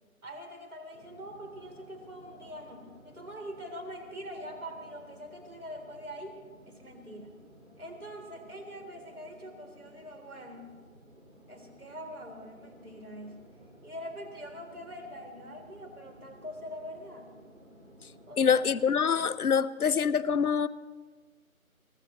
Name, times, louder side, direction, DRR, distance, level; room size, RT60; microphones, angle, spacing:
voice 1, 0.2-7.4 7.8-10.7 11.5-13.5 13.8-17.3 18.3-18.6, equal, 85° right, 4 dB, 3.9 m, -44 dB
sound 1, 0.9-19.3, equal, 60° right, 5.8 m, -55 dB
voice 2, 18.4-20.7, left 6 dB, 85° left, 15 dB, 0.7 m, -25 dB
23.5 x 18.5 x 3.2 m, 1.5 s
figure-of-eight pair, 165°, 43 cm